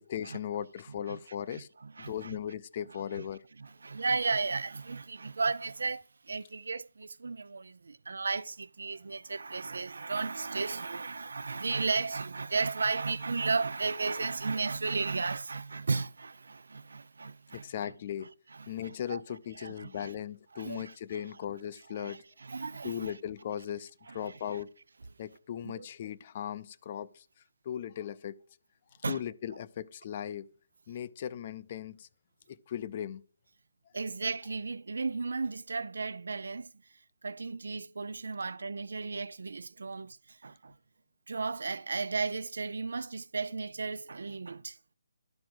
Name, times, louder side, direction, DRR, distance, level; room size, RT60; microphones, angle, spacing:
voice 1, 0.0-1.7 2.0-3.4 17.5-18.3 18.7-22.2 22.8-24.7 25.2-27.3 27.6-28.4 29.1-30.5 30.9-32.1 32.5-33.2, left 10 dB, 30° left, 0.5 m, -38 dB
voice 2, 1.5-2.4 2.9-3.2 3.6-17.9 18.5-19.2 19.6-20.1 20.5-21.2 21.9-23.1 24.1-24.4 25.6-25.9 29.0-29.2 33.9-36.7 37.2-40.8 41.3-44.8, right 4 dB, 75° right, 0.5 m, -34 dB
11.5 x 4.7 x 6.1 m
hypercardioid pair, 170°, 0 cm